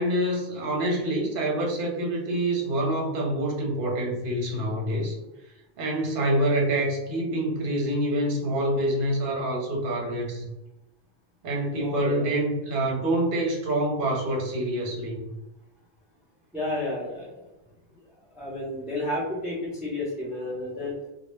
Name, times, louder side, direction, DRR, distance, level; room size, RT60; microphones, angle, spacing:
voice 1, 0.0-5.1 5.8-10.4 11.4-15.3, right 1 dB, 60° right, 0 dB, 0.8 m, -26 dB
voice 2, 11.7-12.4 16.5-17.4 18.3-20.9, left 1 dB, ahead, -7 dB, 0.5 m, -31 dB
2.2 x 2.0 x 3.0 m, 0.96 s
omnidirectional pair, 1.1 m